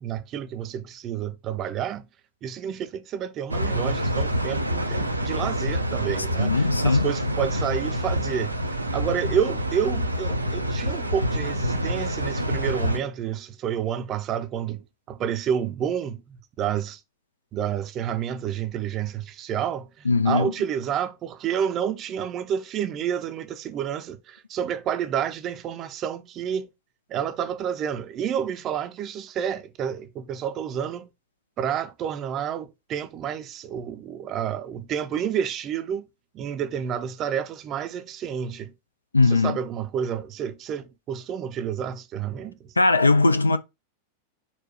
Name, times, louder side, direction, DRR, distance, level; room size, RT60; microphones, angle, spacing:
voice 1, 0.0-2.1 2.4-8.5 8.9-17.0 17.5-26.7 27.1-31.1 31.6-36.0 36.3-38.7 39.2-42.6, right 8 dB, 30° right, 0.5 m, -29 dB
sound 1, 3.5-13.0, equal, 85° right, 0.4 m, -27 dB
voice 2, 6.4-7.1 20.1-20.5 39.1-39.6 42.8-43.6, left 3 dB, 80° left, 0.4 m, -19 dB
4.3 x 2.2 x 4.1 m
figure-of-eight pair, 90°, 0 cm